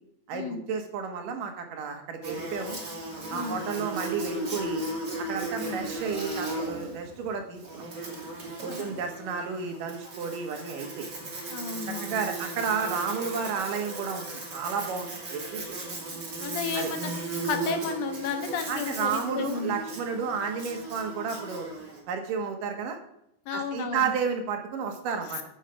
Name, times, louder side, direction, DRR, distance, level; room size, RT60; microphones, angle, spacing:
voice 1, 0.3-2.8 3.3-4.8 5.3-7.8 8.6-11.1 11.9-15.6 16.7-16.9 18.7-21.7 22.1-23.0 23.5-25.4, right 6 dB, 75° right, 5 dB, 3.1 m, -32 dB
Buzz, 2.2-22.0, right 2 dB, 35° right, 2.8 m, -36 dB
voice 2, 3.3-3.6 5.6-5.9 8.6-8.9 11.5-12.2 16.4-17.1 17.4-19.8 23.5-24.1, left 6 dB, 70° left, 7 dB, 2.6 m, -33 dB
9.1 x 8.2 x 5.7 m, 0.78 s
omnidirectional pair, 3.8 m